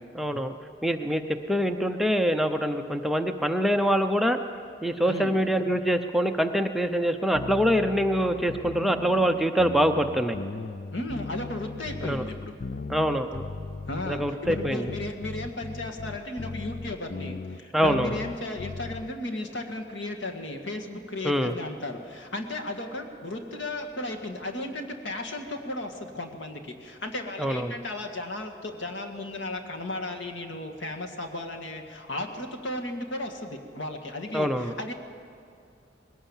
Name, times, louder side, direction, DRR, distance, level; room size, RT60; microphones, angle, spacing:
voice 1, 0.2-0.5 0.8-1.2 1.5-4.4 4.8-10.4 12.0-12.2 12.9-13.5 14.1-14.9 17.7-18.2 21.2-21.5 27.4-27.7 34.3-34.7, equal, ahead, 5 dB, 0.7 m, -24 dB
sound 1, 7.3-19.1, left 4 dB, 55° left, 0.5 m, -38 dB
voice 2, 10.9-12.6 13.9-34.9, left 2 dB, 90° left, 4 dB, 2.0 m, -35 dB
20.5 x 17.5 x 7.3 m, 2.3 s
head